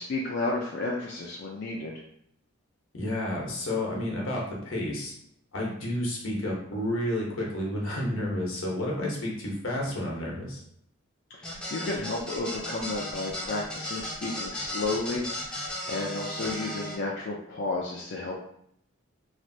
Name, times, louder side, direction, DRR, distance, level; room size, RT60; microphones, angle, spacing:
voice 1, 0.0-2.0 11.3-18.4, left 2 dB, 55° left, -3 dB, 0.4 m, -32 dB
voice 2, 2.9-5.1 5.5-10.6, left 1 dB, 80° left, -2 dB, 0.9 m, -31 dB
sound 1, 11.4-16.9, left 1 dB, 5° left, 0.5 m, -35 dB
3.1 x 2.5 x 2.6 m, 0.71 s
head